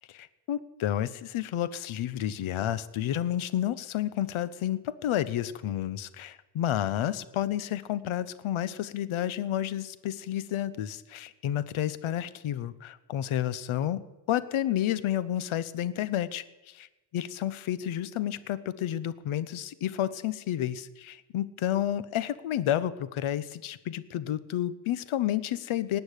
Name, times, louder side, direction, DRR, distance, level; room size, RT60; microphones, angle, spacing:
voice 1, 0.1-14.0 14.3-16.9 17.1-26.0, left 11 dB, 80° left, 16 dB, 1.0 m, -30 dB
18.5 x 7.0 x 9.8 m, 1.1 s
cardioid pair, 70°, 48 cm